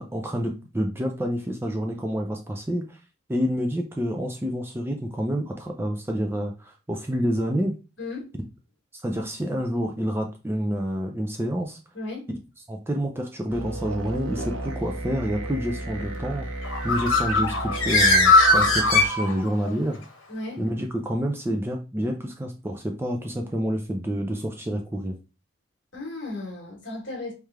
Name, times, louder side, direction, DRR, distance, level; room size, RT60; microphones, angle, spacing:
voice 1, 0.0-3.0 3.3-7.8 8.9-11.8 12.7-16.5 16.8-20.0 20.6-25.2, equal, 10° right, 0.4 m, -28 dB
sound 1, 13.5-19.1, right 1 dB, 85° right, 0.8 m, -34 dB
Bird, 16.6-19.7, left 2 dB, 85° left, 1.2 m, -19 dB
voice 2, 20.3-20.6 25.9-27.3, left 2 dB, 60° left, 1.6 m, -34 dB
3.3 x 3.3 x 3.5 m
head